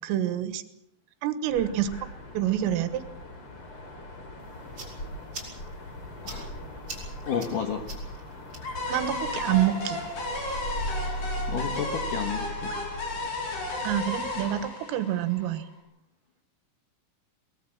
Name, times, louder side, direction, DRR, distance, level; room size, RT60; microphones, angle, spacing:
voice 1, 0.0-0.6 1.2-1.9 2.4-3.0 8.9-10.0 13.8-15.7, right 11 dB, 80° right, 11 dB, 3.9 m, -27 dB
Dog, 1.4-14.7, equal, 30° left, 3.2 m, -39 dB
sound 1, 4.4-11.8, right 3 dB, 25° right, 5.2 m, -48 dB
voice 2, 7.3-7.9 11.5-12.7, left 7 dB, 70° left, 5 dB, 2.0 m, -31 dB
sound 2, 8.8-15.7, left 2 dB, 50° left, 7.2 m, -34 dB
22.5 x 19.5 x 7.3 m, 0.75 s
omnidirectional pair, 6.0 m